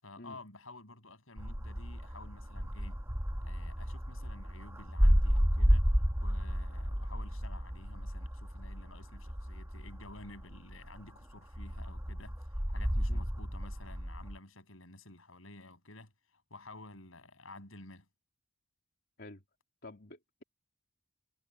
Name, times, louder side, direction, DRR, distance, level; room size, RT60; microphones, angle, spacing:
voice 1, 0.0-3.1 3.4-5.9 6.2-18.1, left 2 dB, 75° left, 7.3 m, -52 dB
sound 1, 1.4-11.1 11.5-14.4, equal, 10° right, 1.8 m, -32 dB
voice 2, 19.8-20.4, left 2 dB, 55° left, 3.7 m, -49 dB
head